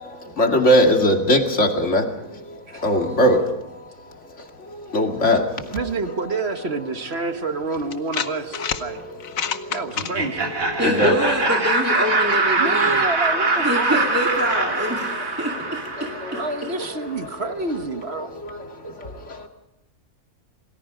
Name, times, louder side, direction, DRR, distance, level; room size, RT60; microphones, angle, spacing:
voice 1, 0.0-6.2 8.5-9.8 10.3-11.2 14.9-15.5 16.0-16.5 17.2-17.4 18.2-19.5, equal, 55° left, 3 dB, 2.6 m, -23 dB
voice 2, 5.7-9.0 9.7-10.5 12.6-14.0 16.3-18.3, right 3 dB, 50° right, 7 dB, 1.5 m, -28 dB
sound 1, 7.1-7.2 7.9-8.8 9.2-10.1, left 8 dB, 70° left, 1.4 m, -27 dB
Laughter, 10.0-16.8, right 3 dB, 70° right, 2.9 m, -23 dB
voice 3, 10.8-13.0 13.6-16.4, equal, 10° right, 0 dB, 2.1 m, -25 dB
28.5 x 19.5 x 5.0 m, 0.89 s
omnidirectional pair, 1.5 m